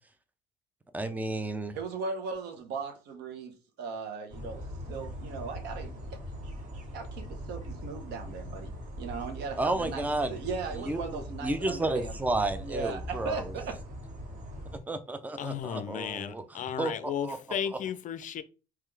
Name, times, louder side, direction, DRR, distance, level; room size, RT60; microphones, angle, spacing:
voice 1, 0.9-1.8 9.6-10.4 10.8-13.5 14.9-17.4 17.7-17.8, right 2 dB, 10° right, 0.5 m, -32 dB
voice 2, 1.7-4.6 4.9-6.2 6.9-8.7 9.0-12.2 12.6-13.8, right 5 dB, 80° right, 1.0 m, -38 dB
sound 1, 4.3-14.8, equal, 50° right, 2.1 m, -41 dB
voice 3, 15.4-18.4, left 8 dB, 50° left, 0.5 m, -34 dB
3.6 x 3.2 x 3.3 m
cardioid pair, 110°, 17 cm